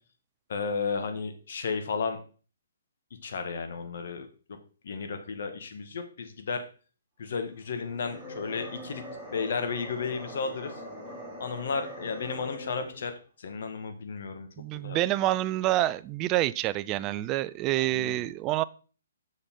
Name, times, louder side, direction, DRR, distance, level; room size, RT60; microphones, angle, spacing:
voice 1, 0.5-2.2 3.2-4.6 4.8-6.6 7.2-9.0 9.3-10.7 11.4-14.5 14.7-15.0 17.7-18.3, left 5 dB, 60° left, 7 dB, 1.5 m, -33 dB
sound 1, 7.8-13.1, equal, 5° left, 3.0 m, -42 dB
voice 2, 14.6-18.6, right 15 dB, 20° right, 16 dB, 0.3 m, -27 dB
7.5 x 6.5 x 3.8 m, 0.38 s
hypercardioid pair, 160°, 0 cm